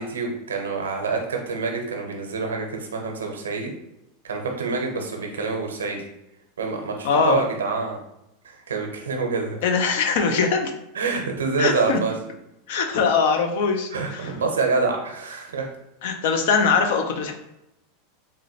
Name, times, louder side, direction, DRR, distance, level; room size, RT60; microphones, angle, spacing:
voice 1, 0.0-3.7 4.2-6.0 6.6-8.0 8.4-9.6 10.9-12.1 13.9-15.7, right 4 dB, 85° right, 2 dB, 0.6 m, -27 dB
voice 2, 7.0-7.4 9.6-10.7 11.6-12.0 12.7-14.3 16.0-17.3, left 5 dB, 70° left, 5 dB, 0.4 m, -21 dB
3.7 x 2.1 x 2.7 m, 0.85 s
hypercardioid pair, 100°, 0 cm